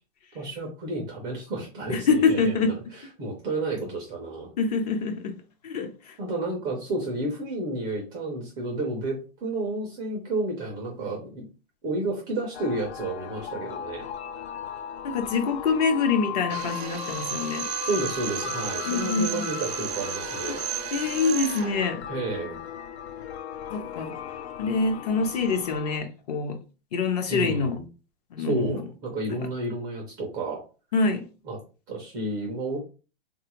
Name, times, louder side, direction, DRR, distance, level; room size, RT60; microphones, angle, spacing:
voice 1, 0.3-2.7 3.2-4.5 6.2-11.4 11.8-14.1 17.9-20.6 22.1-22.6 27.3-27.8 28.4-30.6 31.5-31.6 31.9-32.8, right 2 dB, 15° right, 0.3 m, -31 dB
voice 2, 1.9-3.0 4.6-6.2 15.0-17.7 18.8-19.5 20.5-20.6 20.9-22.1 23.7-24.1 24.6-26.6 26.9-27.8 28.3-28.8 29.4-29.5 30.9-31.3, left 4 dB, 40° left, 0.5 m, -26 dB
sound 1, 12.5-26.0, left 10 dB, 90° left, 0.5 m, -37 dB
Drill, 16.5-21.8, right 11 dB, 85° right, 0.5 m, -33 dB
3.3 x 2.3 x 2.9 m
hypercardioid pair, 150°, 31 cm